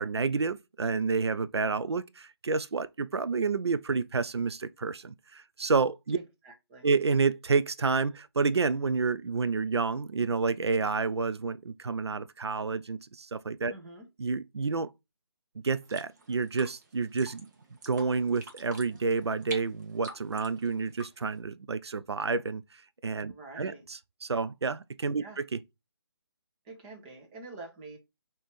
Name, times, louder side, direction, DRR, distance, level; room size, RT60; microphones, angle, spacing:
voice 1, 0.0-6.2 6.8-13.7 14.2-14.9 15.6-17.5 17.9-25.6, right 4 dB, 85° right, 0.4 m, -29 dB
voice 2, 6.1-6.9 13.7-14.1 23.2-23.9 25.2-25.4 26.6-28.0, right 2 dB, 20° right, 1.1 m, -46 dB
sound 1, 15.8-21.4, right 3 dB, 45° right, 1.2 m, -47 dB
5.4 x 2.9 x 3.1 m
figure-of-eight pair, 145°, 13 cm